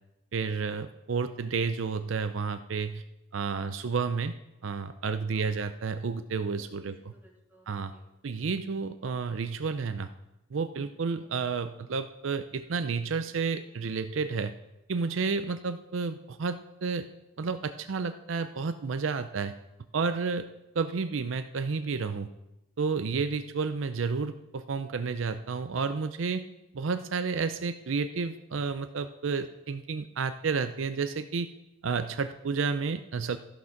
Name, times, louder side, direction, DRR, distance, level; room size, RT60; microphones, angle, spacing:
voice 1, 0.3-3.0 3.3-4.3 4.6-7.0 7.7-7.9 8.2-10.1 10.5-14.5 14.9-17.1 17.4-19.5 19.9-20.5 20.7-22.3 22.8-26.4 26.7-31.5 31.8-33.4, right 5 dB, 75° right, 10 dB, 0.5 m, -31 dB
voice 2, 5.3-5.7 6.6-8.4, right 1 dB, 10° right, -3 dB, 2.5 m, -61 dB
13.5 x 6.0 x 5.8 m, 0.92 s
head